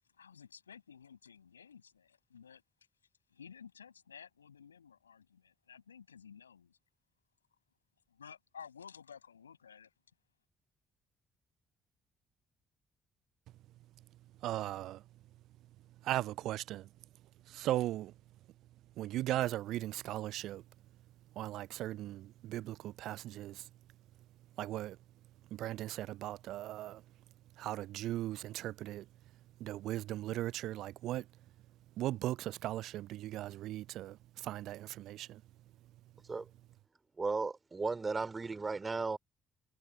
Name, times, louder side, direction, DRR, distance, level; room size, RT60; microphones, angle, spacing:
voice 1, 0.1-2.6 3.3-6.8 8.1-9.9, left 7 dB, 80° left, 6.4 m, -54 dB
voice 2, 14.4-15.0 16.0-16.9 17.5-18.1 19.0-20.6 21.4-23.7 24.6-25.0 25.5-27.0 27.6-29.1 29.6-31.3 32.0-35.4, right 14 dB, 60° right, 0.4 m, -38 dB
voice 3, 37.2-39.2, right 4 dB, 25° right, 3.3 m, -35 dB
figure-of-eight pair, 45°, 0 cm